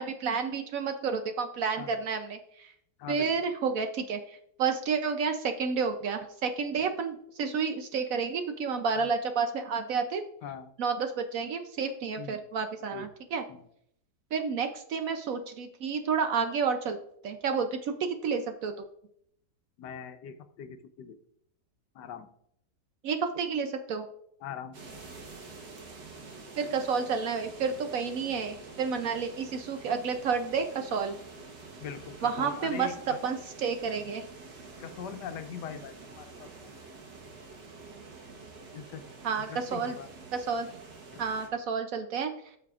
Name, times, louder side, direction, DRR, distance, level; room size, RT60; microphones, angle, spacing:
voice 1, 0.0-2.7 3.1-10.2 10.8-13.4 14.3-17.0 17.2-18.7 23.0-24.1 26.6-31.1 32.2-32.9 33.2-34.3 39.2-40.0 40.3-40.7 41.2-42.3, right 5 dB, 65° right, 7 dB, 0.9 m, -30 dB
voice 2, 3.0-3.4 10.4-10.7 12.2-12.5 12.9-13.1 13.5-13.6 19.8-21.2 22.0-22.3 24.4-24.8 31.8-33.2 34.8-36.5 38.7-39.1 39.5-40.1 41.1-41.2, left 7 dB, 80° left, 10 dB, 1.3 m, -41 dB
sound 1, 24.7-41.5, right 3 dB, 80° right, 1.9 m, -47 dB
13.5 x 5.8 x 2.4 m, 0.72 s
omnidirectional pair, 1.8 m